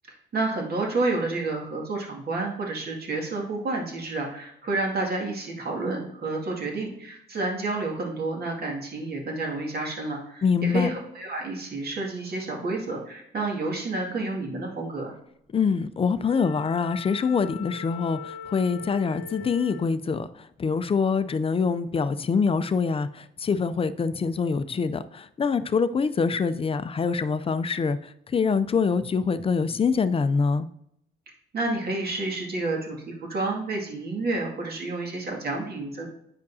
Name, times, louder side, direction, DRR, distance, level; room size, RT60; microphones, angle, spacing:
voice 1, 0.1-15.1 31.5-36.0, right 2 dB, 50° right, 2.2 m, -30 dB
voice 2, 10.4-10.9 15.5-30.7, left 5 dB, 30° left, 0.4 m, -25 dB
Wind instrument woodwind instrument, 16.2-20.0, left 6 dB, 70° left, 0.8 m, -41 dB
9.4 x 5.2 x 2.7 m
cardioid pair, 90°, 20 cm